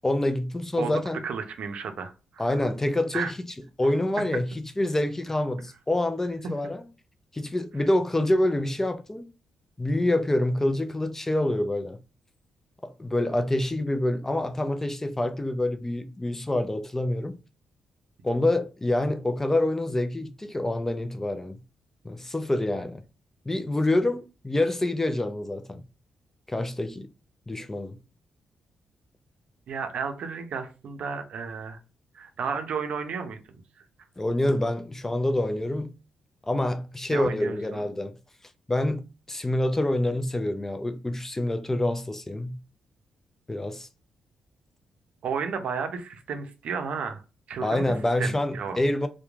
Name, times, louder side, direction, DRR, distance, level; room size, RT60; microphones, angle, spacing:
voice 1, 0.0-1.2 2.4-3.3 3.8-6.8 7.3-9.3 9.8-12.0 12.8-17.4 18.2-21.6 22.0-23.0 23.5-25.8 26.5-27.1 27.5-28.0 34.2-36.0 36.4-38.2 38.7-42.6 43.5-43.9 47.6-49.1, left 1 dB, 15° left, 0.4 m, -26 dB
voice 2, 1.2-2.5 3.1-3.3 29.7-31.8 32.1-33.4 37.1-37.9 45.2-47.2 47.5-47.9 48.2-48.8, right 6 dB, 70° right, 0.5 m, -32 dB
2.9 x 2.1 x 2.3 m
supercardioid pair, 55°, 2 cm